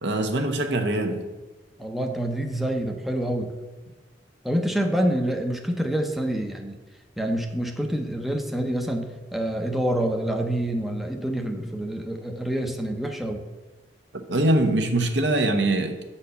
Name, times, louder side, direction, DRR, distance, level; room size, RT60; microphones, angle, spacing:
voice 1, 0.0-1.2 14.3-16.1, right 1 dB, 75° right, 5 dB, 0.9 m, -23 dB
voice 2, 1.8-3.5 4.4-6.8 7.2-13.4, right 1 dB, ahead, 3 dB, 0.6 m, -27 dB
8.1 x 4.2 x 6.7 m, 1.2 s
head